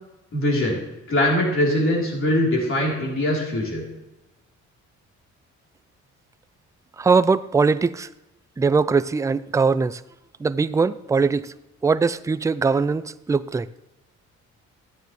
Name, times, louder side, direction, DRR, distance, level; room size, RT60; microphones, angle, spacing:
voice 1, 0.3-3.8, left 1 dB, 45° left, -2 dB, 3.7 m, -22 dB
voice 2, 7.0-8.1 8.6-10.0 10.4-11.5 11.8-13.7, right 4 dB, 10° right, 15 dB, 0.3 m, -21 dB
15.0 x 9.1 x 3.2 m, 0.96 s
cardioid pair, 90°, 30 cm